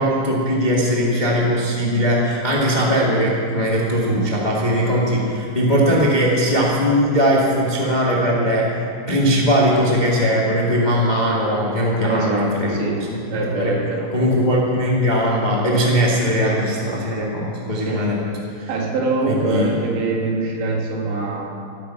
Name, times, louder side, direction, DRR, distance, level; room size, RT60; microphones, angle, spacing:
voice 1, 0.0-8.7 9.1-13.0 13.3-13.7 14.1-18.2 18.5-18.7 19.3-19.7, equal, 80° left, -4 dB, 0.4 m, -19 dB
voice 2, 12.0-13.0 13.3-14.1 17.9-18.0 18.7-21.5, right 3 dB, 80° right, -1 dB, 4.2 m, -23 dB
14.0 x 14.0 x 5.8 m, 2.4 s
omnidirectional pair, 5.0 m